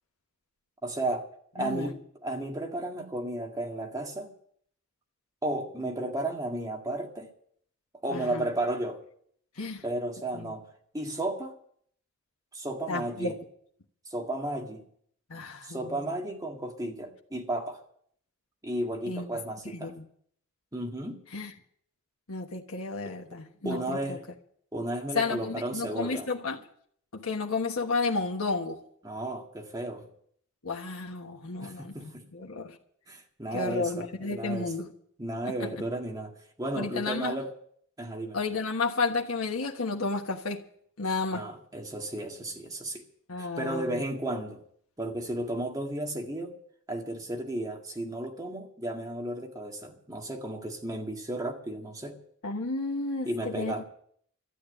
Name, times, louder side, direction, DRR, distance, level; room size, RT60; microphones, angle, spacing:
voice 1, 0.8-1.3 1.5-4.3 5.4-7.3 8.0-9.0 9.8-10.7 10.9-11.5 12.5-13.4 14.1-14.8 15.6-17.8 18.6-19.9 20.7-21.2 23.1-23.4 23.6-24.2 24.7-26.3 29.0-30.1 31.6-32.3 33.1-34.7 35.2-37.5 38.0-38.4 41.3-43.0 43.4-44.6 45.0-46.5 46.9-52.2 53.2-53.8, right 1 dB, 15° right, 1.9 m, -33 dB
voice 2, 1.6-1.9 8.1-8.5 9.6-9.8 10.3-10.5 12.9-13.4 15.3-16.1 19.1-19.3 19.7-20.0 21.3-21.5 22.3-24.2 25.1-26.6 27.1-28.8 30.6-32.8 33.5-34.9 36.8-37.3 38.3-40.6 41.0-41.4 43.3-44.0 52.4-53.8, left 3 dB, 80° left, 1.3 m, -32 dB
13.0 x 8.7 x 9.9 m
head